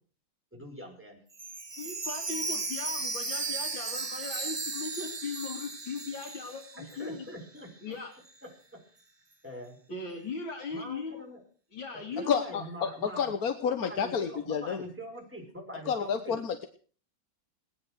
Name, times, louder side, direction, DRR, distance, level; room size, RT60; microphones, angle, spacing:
voice 1, 0.5-1.3 6.8-8.0 8.4-8.8 9.4-9.8 10.7-11.4 11.9-13.3 13.7-16.4, equal, 5° right, 0 dB, 5.4 m, -44 dB
Chime, 1.3-7.3 7.6-7.7 8.3-8.4, right 3 dB, 25° right, 0.5 m, -36 dB
voice 2, 1.8-7.3 7.8-8.1 9.9-11.2 11.7-12.3, left 4 dB, 85° left, -2 dB, 3.4 m, -38 dB
voice 3, 12.3-14.8 15.9-16.7, left 7 dB, 55° left, 8 dB, 1.4 m, -30 dB
18.5 x 10.5 x 6.4 m, 0.43 s
omnidirectional pair, 2.1 m